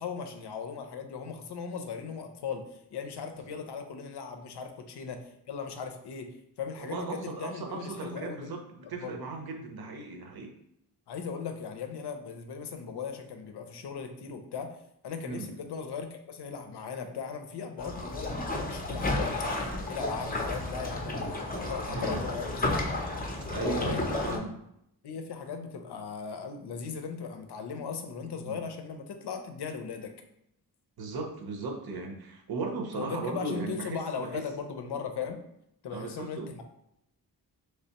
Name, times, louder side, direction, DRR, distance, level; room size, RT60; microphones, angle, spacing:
voice 1, 0.0-5.2 5.5-6.3 6.6-8.5 9.0-9.2 11.1-14.8 15.0-22.7 23.5-24.4 25.0-30.1 32.9-35.4 35.8-36.6, left 6 dB, 85° left, 6 dB, 0.6 m, -38 dB
voice 2, 6.8-10.5 15.2-15.5 21.8-22.2 23.3-24.5 28.3-28.6 31.0-34.4 35.9-36.5, right 3 dB, 65° right, 3 dB, 0.7 m, -37 dB
sound 1, 17.8-24.4, left 2 dB, 25° left, 0.4 m, -32 dB
3.3 x 3.2 x 2.8 m, 0.77 s
wide cardioid pair, 170°, 39 cm